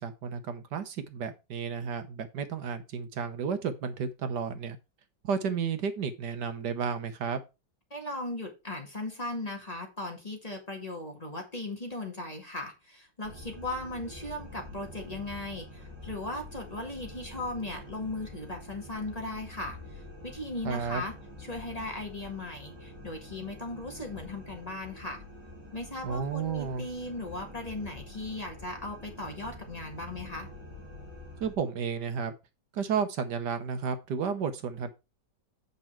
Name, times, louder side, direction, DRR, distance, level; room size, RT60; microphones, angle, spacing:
voice 1, 0.0-4.8 5.2-7.4 20.6-21.0 26.0-26.8 31.4-32.3 32.7-34.9, right 6 dB, 70° right, 1.5 m, -32 dB
voice 2, 7.9-21.1 21.4-25.2 25.7-30.5, left 2 dB, 20° left, 1.8 m, -37 dB
sound 1, 13.2-31.5, left 1 dB, 15° right, 2.5 m, -46 dB
8.2 x 5.5 x 4.5 m
omnidirectional pair, 1.9 m